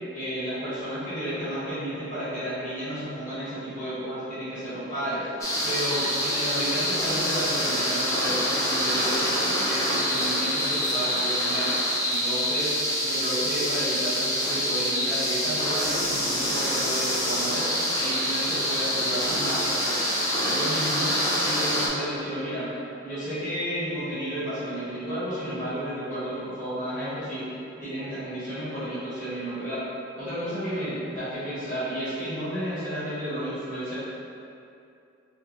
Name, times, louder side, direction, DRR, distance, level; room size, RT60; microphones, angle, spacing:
voice 1, 0.1-5.3 5.6-11.7 12.1-12.7 13.0-17.6 17.9-19.9 20.2-21.2 21.4-22.7 23.0-29.8 30.2-34.0, equal, 40° left, -13 dB, 1.5 m, -32 dB
sound 1, 5.4-21.9, equal, 15° left, 0.6 m, -26 dB
3.5 x 2.9 x 3.0 m, 2.6 s
head